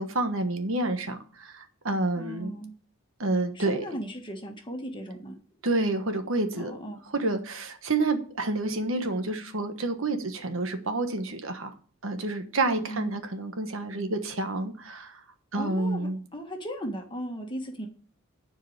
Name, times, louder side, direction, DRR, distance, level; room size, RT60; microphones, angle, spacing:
voice 1, 0.0-2.5 3.2-3.8 5.6-6.7 7.1-11.7 12.0-15.2 15.5-16.2, right 2 dB, 60° right, 7 dB, 1.3 m, -29 dB
voice 2, 2.2-2.7 3.5-5.4 6.6-7.0 12.8-13.2 15.6-17.9, equal, 20° left, 3 dB, 1.6 m, -37 dB
11.0 x 4.8 x 8.0 m, 0.43 s
head